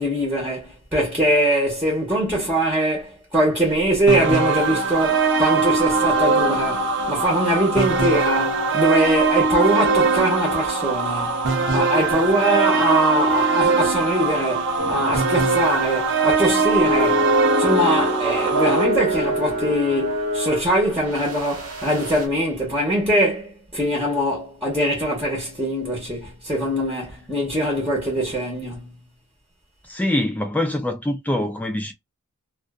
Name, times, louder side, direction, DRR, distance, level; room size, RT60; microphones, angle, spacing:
voice 1, 0.0-17.3 17.6-29.0, right 1 dB, 10° right, 0.9 m, -22 dB
sound 1, 4.1-18.8, right 4 dB, 60° right, 0.6 m, -21 dB
sound 2, 14.8-15.6 15.9-16.1 16.8-22.3, left 1 dB, 90° right, 1.0 m, -25 dB
voice 2, 29.8-31.9, left 1 dB, 5° left, 0.3 m, -24 dB
2.5 x 2.4 x 2.2 m
head